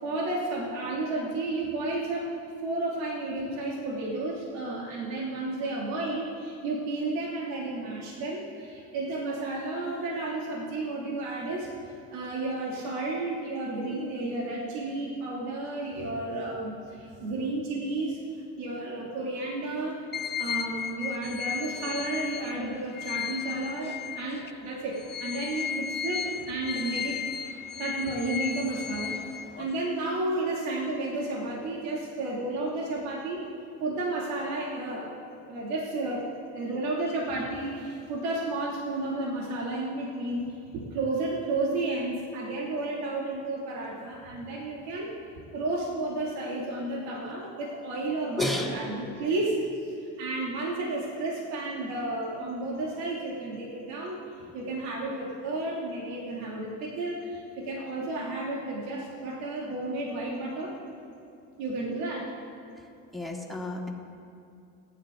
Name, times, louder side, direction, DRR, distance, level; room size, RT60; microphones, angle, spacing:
voice 1, 0.0-2.3 2.6-18.2 18.6-20.0 20.4-27.2 27.4-27.5 27.8-33.4 33.8-35.1 35.5-36.2 36.5-45.1 45.5-60.7 61.6-62.2, right 2 dB, 85° right, -4 dB, 2.7 m, -32 dB
sound 1, 20.1-24.5 24.9-29.8, left 7 dB, 25° left, 0.6 m, -35 dB
voice 2, 48.4-48.8 63.1-63.9, left 1 dB, ahead, -1 dB, 2.8 m, -30 dB
28.0 x 11.0 x 3.9 m, 2.5 s
supercardioid pair, 90°, 38 cm